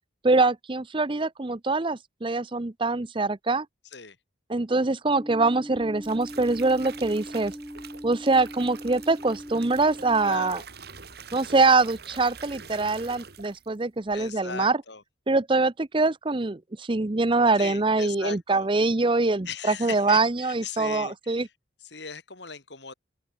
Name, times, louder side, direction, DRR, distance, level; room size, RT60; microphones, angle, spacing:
voice 1, 0.2-3.7 4.5-7.5 8.0-10.6 11.3-14.8 15.3-21.5, right 3 dB, 25° right, 0.7 m, -24 dB
sound 1, 5.0-10.5, equal, 5° right, 2.4 m, -40 dB
sound 2, 5.8-13.8 14.1-14.4, right 5 dB, 55° right, 3.3 m, -45 dB
voice 2, 10.2-10.6 14.1-15.0 17.6-18.7 19.5-21.5 21.8-22.9, left 5 dB, 65° left, 3.9 m, -38 dB
open air
head